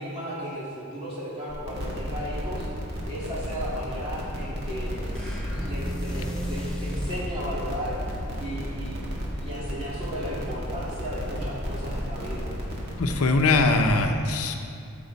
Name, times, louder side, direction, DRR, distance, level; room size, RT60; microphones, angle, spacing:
voice 1, 0.0-2.7 3.1-5.0 5.5-12.5, equal, 25° right, -8 dB, 2.6 m, -35 dB
sound 1, 1.5-14.0, equal, 45° right, 1.7 m, -33 dB
sound 2, 5.1-7.3, equal, 5° left, 0.9 m, -34 dB
voice 2, 13.0-14.5, left 3 dB, 80° left, 4 dB, 0.7 m, -21 dB
13.5 x 7.1 x 4.1 m, 2.5 s
head